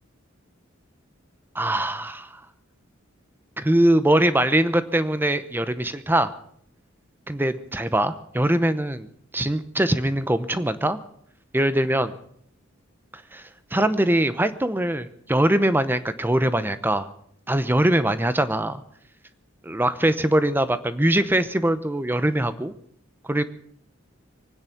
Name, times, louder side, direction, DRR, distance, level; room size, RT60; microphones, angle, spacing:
voice 1, 1.5-2.3 3.6-6.3 7.3-9.1 9.3-11.0 11.5-12.1 13.3-13.4 13.7-17.1 17.5-18.8 19.6-22.7 23.2-23.4, right 1 dB, 10° right, 12 dB, 0.8 m, -22 dB
24.0 x 9.7 x 5.9 m, 0.66 s
head